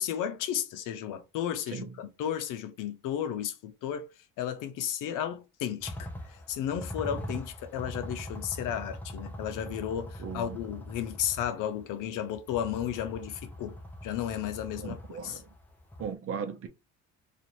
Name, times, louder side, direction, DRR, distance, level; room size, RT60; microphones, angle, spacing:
voice 1, 0.0-4.0 4.4-6.1 6.5-13.7 14.0-15.0 15.2-15.4, left 10 dB, 65° left, 0.7 m, -33 dB
voice 2, 1.7-2.0 10.2-10.6 14.8-15.5 16.0-16.7, right 6 dB, 40° right, 0.7 m, -37 dB
sound 1, 5.8-16.1, left 1 dB, 5° left, 0.8 m, -42 dB
2.6 x 2.5 x 3.0 m
cardioid pair, 100°, 34 cm